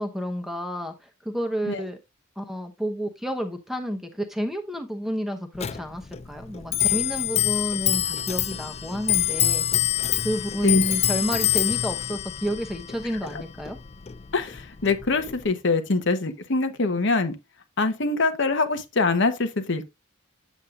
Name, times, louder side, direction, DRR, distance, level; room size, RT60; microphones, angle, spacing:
voice 1, 0.0-2.0 2.4-9.7 10.2-13.8, equal, ahead, 0.9 m, -30 dB
Clock, 5.6-15.5, left 12 dB, 30° left, 0.4 m, -26 dB
voice 2, 14.3-17.3 17.8-19.9, left 3 dB, 60° left, 1.0 m, -24 dB
8.1 x 7.3 x 2.4 m
head